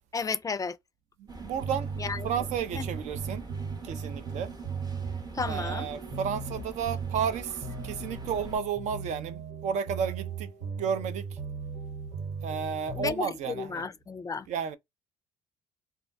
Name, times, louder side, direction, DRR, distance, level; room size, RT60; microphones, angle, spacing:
voice 1, 0.1-0.8 2.0-2.3 2.7-2.8 5.3-5.9 12.9-14.5, left 5 dB, 25° left, 0.3 m, -33 dB
sound 1, 1.3-8.6, right 3 dB, 35° right, 0.8 m, -43 dB
voice 2, 1.4-1.9 2.2-3.5 3.8-4.5 5.5-10.5 10.8-11.3 12.4-13.8 14.5-14.8, right 7 dB, 65° right, 0.4 m, -32 dB
sound 2, 1.5-13.1, right 5 dB, 80° right, 1.3 m, -37 dB
2.3 x 2.1 x 2.5 m
hypercardioid pair, 55°, 13 cm